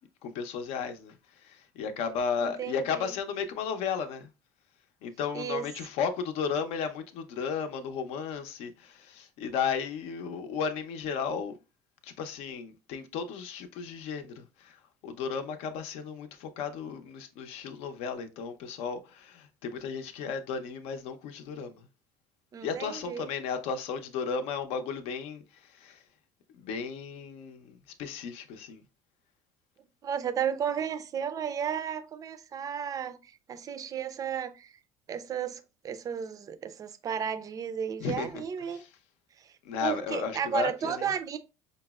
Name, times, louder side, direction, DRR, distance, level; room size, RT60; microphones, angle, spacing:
voice 1, 0.2-4.3 5.0-11.6 12.0-21.9 22.6-26.0 26.5-28.8 38.0-38.4 38.7-38.9 39.6-41.1, left 6 dB, 65° left, 0.6 m, -34 dB
voice 2, 2.4-3.1 5.3-5.6 22.5-23.3 30.0-34.7 35.1-38.8 39.4-39.5 39.8-41.4, right 8 dB, 30° right, 0.4 m, -33 dB
5.2 x 2.0 x 2.3 m
supercardioid pair, 110°, 11 cm